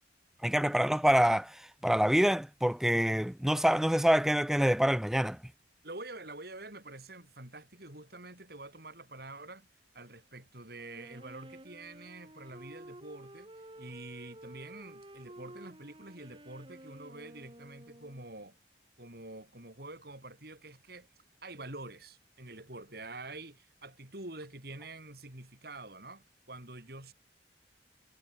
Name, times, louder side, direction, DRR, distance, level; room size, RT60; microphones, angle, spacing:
voice 1, 0.4-5.4, equal, ahead, 0.4 m, -26 dB
voice 2, 5.8-9.7 9.9-13.5 13.8-18.6 19.0-21.1 21.4-27.1, right 2 dB, 60° right, 6.0 m, -47 dB
Wind instrument woodwind instrument, 10.7-18.4, right 1 dB, 30° right, 3.2 m, -51 dB
head